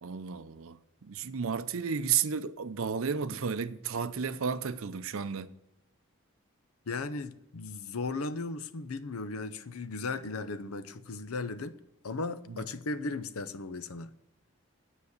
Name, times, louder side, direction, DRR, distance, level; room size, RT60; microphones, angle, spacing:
voice 1, 0.0-5.5 12.5-12.6, right 6 dB, 75° right, 0.6 m, -33 dB
voice 2, 6.9-11.8 12.0-14.1, left 3 dB, 90° left, 0.7 m, -36 dB
9.6 x 8.1 x 6.6 m
head